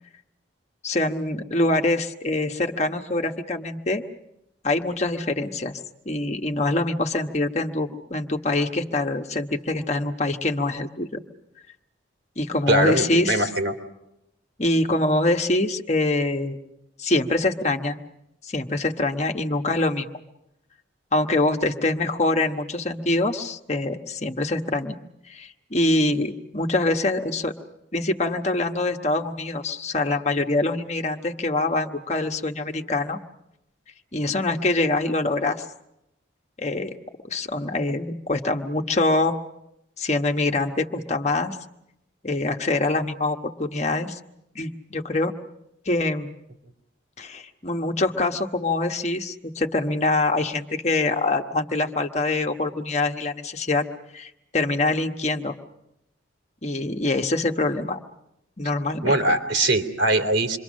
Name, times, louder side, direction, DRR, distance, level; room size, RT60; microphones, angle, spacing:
voice 1, 0.8-4.0 4.6-11.2 12.4-13.5 14.6-16.6 17.0-18.0 18.4-20.1 21.1-25.0 25.3-27.5 27.9-33.2 34.1-35.7 36.6-37.0 37.2-39.3 40.0-41.6 42.2-44.2 44.5-45.3 45.8-46.3 47.2-53.8 54.1-55.5 56.6-58.0 58.6-59.2, left 2 dB, 35° left, 5 dB, 1.2 m, -24 dB
voice 2, 12.7-13.7 59.0-60.6, right 1 dB, 70° right, 4 dB, 3.0 m, -21 dB
27.5 x 23.5 x 6.3 m, 0.84 s
head